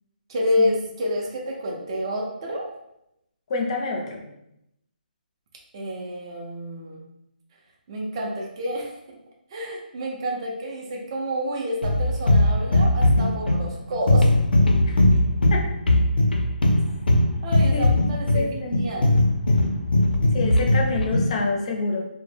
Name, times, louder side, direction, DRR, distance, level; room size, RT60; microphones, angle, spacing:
voice 1, 0.3-2.7 5.7-7.0 7.9-9.0 9.5-14.3 17.4-19.2, equal, 30° right, -1 dB, 0.4 m, -29 dB
voice 2, 3.5-4.2 14.9-15.0 15.5-15.6 17.7-17.9 18.3-18.8 20.3-22.1, left 3 dB, 40° left, 1 dB, 0.5 m, -27 dB
sound 1, 11.8-21.4, left 1 dB, 90° left, 0.5 m, -19 dB
2.1 x 2.0 x 3.2 m, 0.82 s
hypercardioid pair, 160°, 5 cm